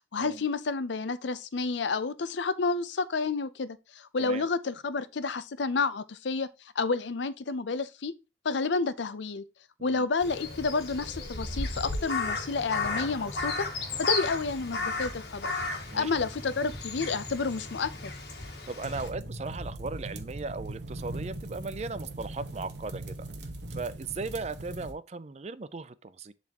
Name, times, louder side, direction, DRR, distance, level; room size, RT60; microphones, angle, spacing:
voice 1, 0.1-6.5 6.8-8.1 8.4-9.5 9.8-13.7 14.0-15.5 15.9-18.1, left 4 dB, 80° left, 0.6 m, -30 dB
Crow, 10.2-19.1, left 3 dB, 60° left, 1.8 m, -34 dB
sound 1, 12.2-16.2, left 3 dB, 30° left, 0.7 m, -49 dB
voice 2, 18.7-23.3 23.7-26.3, right 3 dB, 35° right, 0.4 m, -37 dB
sound 2, 18.8-24.9, right 2 dB, 70° right, 1.1 m, -40 dB
10.5 x 4.1 x 2.9 m
head